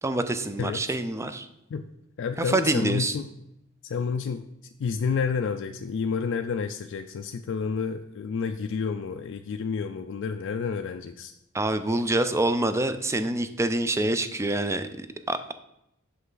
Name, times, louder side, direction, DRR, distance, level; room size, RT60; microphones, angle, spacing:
voice 1, 0.0-1.5 2.4-3.1 11.5-15.4, right 2 dB, 15° right, 10 dB, 0.4 m, -26 dB
voice 2, 2.2-3.2 3.8-4.4 4.8-11.3, left 5 dB, 60° left, 6 dB, 0.4 m, -29 dB
6.3 x 5.7 x 3.9 m, 0.83 s
head